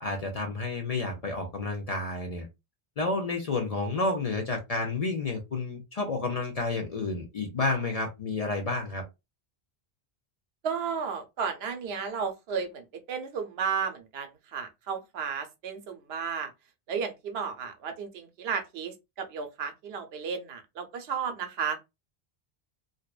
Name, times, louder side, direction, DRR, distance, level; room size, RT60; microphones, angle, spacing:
voice 1, 0.0-2.5 3.0-9.0, left 3 dB, 50° left, 0.5 m, -30 dB
voice 2, 10.6-16.5 16.9-21.8, right 6 dB, 80° right, 0.9 m, -33 dB
2.6 x 2.2 x 2.3 m
omnidirectional pair, 1.0 m